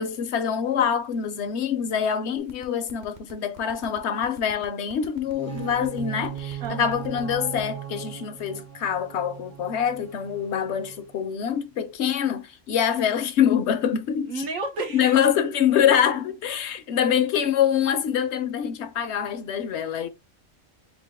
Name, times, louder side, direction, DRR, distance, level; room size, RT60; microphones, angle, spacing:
voice 1, 0.0-14.4 14.9-20.1, left 8 dB, 65° left, 0.8 m, -25 dB
sound 1, 2.4-7.7, right 4 dB, 40° right, 0.8 m, -46 dB
sound 2, 5.2-11.2, right 9 dB, 20° right, 0.5 m, -38 dB
voice 2, 6.6-7.0 14.3-15.2, right 3 dB, 85° right, 1.6 m, -31 dB
4.3 x 2.5 x 3.5 m
omnidirectional pair, 1.3 m